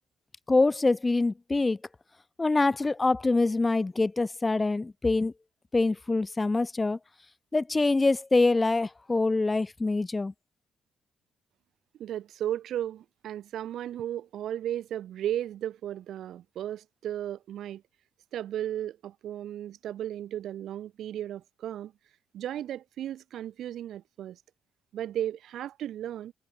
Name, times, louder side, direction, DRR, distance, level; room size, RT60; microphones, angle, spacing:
voice 1, 0.5-1.8 2.4-5.3 5.7-7.0 7.5-10.3, left 3 dB, 20° left, 0.5 m, -25 dB
voice 2, 12.0-17.8 18.3-21.9 22.3-24.4 24.9-26.3, right 11 dB, 75° right, 2.5 m, -35 dB
cardioid pair, 90°, 0 cm